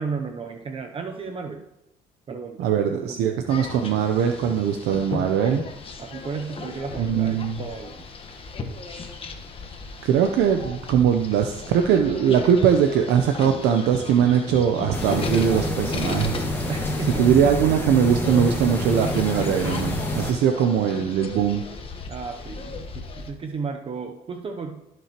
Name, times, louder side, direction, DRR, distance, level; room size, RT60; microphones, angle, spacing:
voice 1, 0.0-1.6 2.3-3.3 6.0-8.0 16.7-17.4 22.1-24.8, right 5 dB, 35° right, 4 dB, 0.7 m, -34 dB
voice 2, 2.6-5.6 7.0-7.6 10.0-16.7 17.2-21.6, right 8 dB, 80° right, 5 dB, 0.7 m, -21 dB
sound 1, 3.5-23.3, left 4 dB, 35° left, 1.2 m, -36 dB
sound 2, 14.9-20.3, left 1 dB, 15° left, 1.7 m, -27 dB
18.0 x 6.1 x 3.0 m, 0.91 s
cardioid pair, 110°, 17 cm